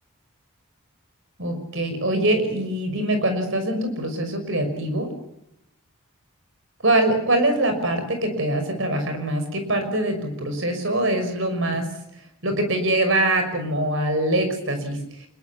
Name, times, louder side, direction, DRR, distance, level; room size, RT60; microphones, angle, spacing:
voice 1, 1.4-5.1 6.8-11.9 12.4-15.3, right 1 dB, 60° right, 7 dB, 5.9 m, -23 dB
27.0 x 22.0 x 7.2 m, 0.80 s
head